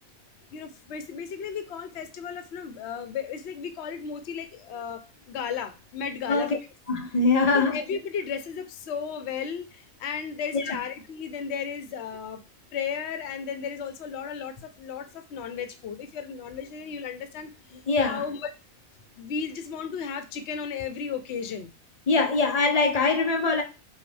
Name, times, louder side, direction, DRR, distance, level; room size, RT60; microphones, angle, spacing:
voice 1, 0.5-6.6 7.5-12.4 12.7-17.5 18.0-18.5 19.2-21.7, left 6 dB, 55° left, 0.9 m, -34 dB
voice 2, 6.9-7.8 10.5-10.7 17.9-18.2 22.1-23.6, left 3 dB, 40° left, 0.6 m, -23 dB
5.5 x 2.3 x 3.3 m
omnidirectional pair, 1.5 m